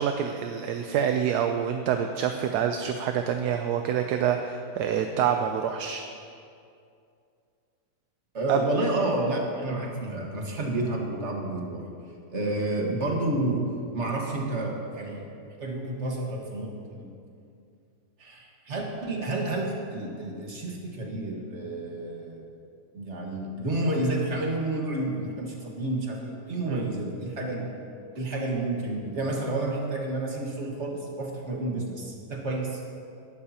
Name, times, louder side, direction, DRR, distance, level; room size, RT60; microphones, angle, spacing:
voice 1, 0.0-6.0 8.5-8.6 26.7-26.9, right 8 dB, 75° right, 6 dB, 1.1 m, -27 dB
voice 2, 8.3-11.8 12.3-13.6 13.9-15.3 15.6-17.1 18.2-22.4 22.9-27.7 28.2-32.8, right 2 dB, 45° right, -1 dB, 1.8 m, -30 dB
18.0 x 11.5 x 2.9 m, 2.4 s
omnidirectional pair, 1.8 m